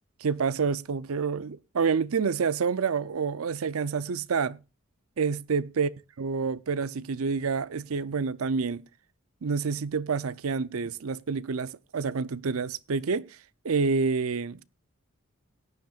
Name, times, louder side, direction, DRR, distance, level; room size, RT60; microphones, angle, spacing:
voice 1, 0.2-4.6 5.2-5.9 6.2-8.8 9.4-13.3 13.6-14.7, right 5 dB, 75° right, 0.5 m, -28 dB
17.5 x 10.5 x 2.4 m
head